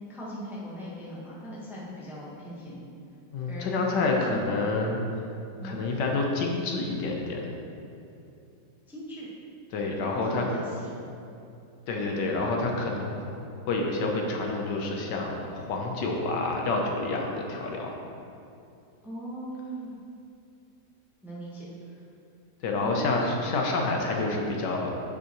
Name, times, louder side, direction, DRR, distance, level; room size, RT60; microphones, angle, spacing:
voice 1, 0.1-2.8 3.4-3.8 4.2-4.7 5.6-5.8 8.9-9.3 10.2-10.9 19.0-20.0 21.2-22.0 22.8-23.6, right 1 dB, ahead, -7 dB, 0.9 m, -39 dB
voice 2, 3.3-5.0 5.6-7.6 9.7-10.4 11.9-13.3 13.7-17.9 22.6-24.9, left 3 dB, 70° left, 0 dB, 1.4 m, -28 dB
7.8 x 6.3 x 3.0 m, 2.6 s
omnidirectional pair, 2.0 m